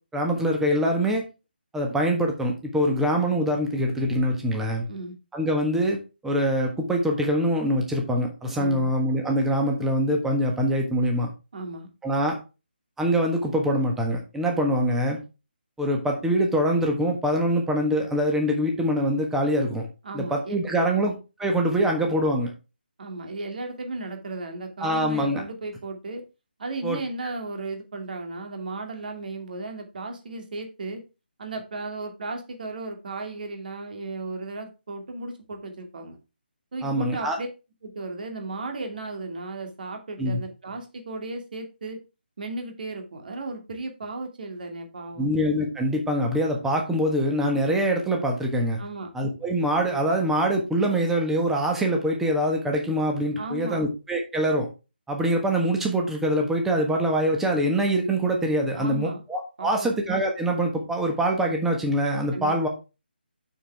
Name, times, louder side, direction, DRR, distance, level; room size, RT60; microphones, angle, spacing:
voice 1, 0.1-1.2 1.7-4.8 5.3-11.3 12.0-12.4 13.0-15.2 15.8-19.8 20.1-22.5 24.8-25.4 26.8-27.0 36.8-37.4 40.2-40.4 45.2-48.8 49.1-54.7 55.1-62.7, equal, 5° right, 1 dB, 1.4 m, -24 dB
voice 2, 8.6-8.9 11.5-11.9 20.0-21.2 23.0-26.2 26.6-31.0 31.4-36.2 36.7-37.5 37.8-42.0 42.4-45.3 48.8-49.1 53.4-53.9 58.8-59.2 59.6-60.0 62.3-62.7, right 2 dB, 55° right, 4 dB, 2.6 m, -35 dB
7.3 x 6.9 x 3.5 m, 0.29 s
figure-of-eight pair, 160°, 6 cm